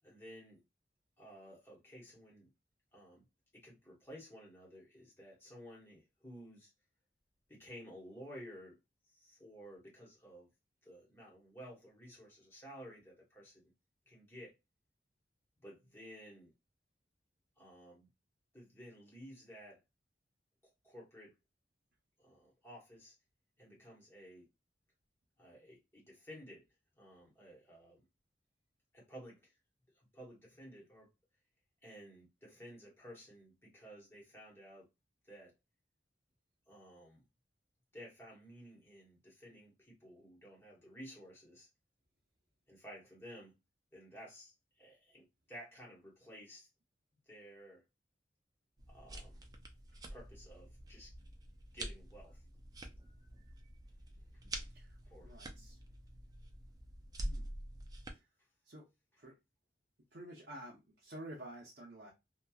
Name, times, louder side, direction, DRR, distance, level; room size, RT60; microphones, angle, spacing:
voice 1, 0.0-0.6 1.2-2.5 2.9-3.2 3.5-6.7 7.5-8.8 9.1-10.5 10.8-13.7 14.1-14.5 15.6-16.5 17.6-18.1 18.5-19.8 20.8-21.4 22.2-23.1 23.6-24.5 25.4-26.6 27.0-28.0 28.9-29.5 29.9-31.1 31.8-34.9 35.3-35.5 36.7-37.2 37.9-41.7 42.7-43.6 43.9-46.7 47.3-47.8 48.9-49.5 50.1-51.1 51.7-52.4 55.1-55.3, equal, 15° left, 1.0 m, -54 dB
sound 1, 48.8-58.1, right 1 dB, 20° right, 0.3 m, -47 dB
voice 2, 54.5-55.8 57.2-57.5 58.1-58.3 58.6-58.9 59.2-59.3 60.1-62.1, right 1 dB, 65° right, 0.7 m, -51 dB
2.9 x 2.2 x 2.3 m
head